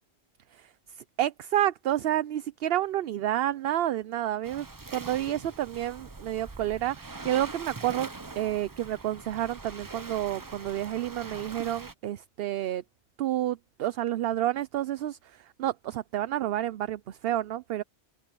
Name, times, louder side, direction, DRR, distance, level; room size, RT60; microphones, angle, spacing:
voice 1, 1.0-4.7 4.9-8.1 8.4-12.8 13.2-17.8, right 12 dB, 65° right, 0.7 m, -30 dB
Waves surf, 4.4-11.9, right 3 dB, 20° right, 0.7 m, -43 dB
open air
omnidirectional pair, 1.1 m